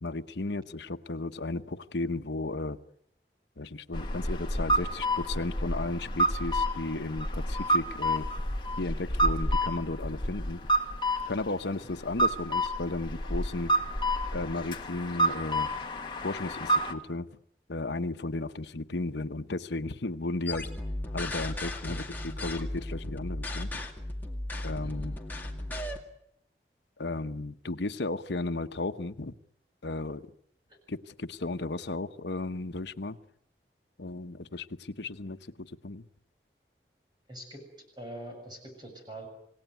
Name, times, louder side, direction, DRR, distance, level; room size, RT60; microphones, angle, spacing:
voice 1, 0.0-2.8 3.6-8.3 8.8-10.6 11.3-13.7 14.3-15.7 16.2-17.3 17.7-20.7 21.1-23.8 24.6-25.2 27.0-29.3 29.8-30.3 30.9-33.2 34.0-36.1, left 2 dB, 85° left, 9 dB, 1.0 m, -34 dB
sound 1, 3.9-16.9, right 1 dB, 25° left, 1.7 m, -29 dB
sound 2, 20.5-26.0, left 1 dB, 10° left, 2.2 m, -35 dB
voice 2, 37.3-37.6 37.9-39.3, right 1 dB, 25° right, 3 dB, 7.2 m, -44 dB
28.0 x 18.0 x 9.4 m, 0.73 s
head